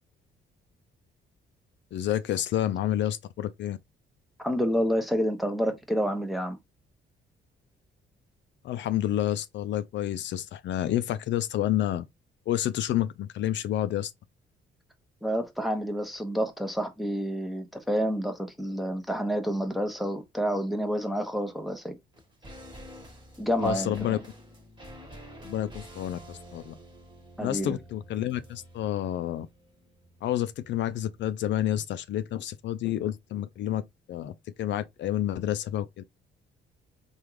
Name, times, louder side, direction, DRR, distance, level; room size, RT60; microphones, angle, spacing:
voice 1, 1.9-3.8 8.6-12.1 12.5-14.1 23.6-24.2 25.4-26.7 27.4-29.5 30.2-33.8 34.1-36.0, left 12 dB, 65° left, 0.4 m, -29 dB
voice 2, 4.4-6.6 15.2-22.0 23.4-24.2 27.4-27.8, equal, ahead, 0.7 m, -29 dB
sound 1, 22.1-31.5 31.8-31.9, equal, 25° right, 1.3 m, -49 dB
3.5 x 2.3 x 3.1 m
cardioid pair, 90°, 20 cm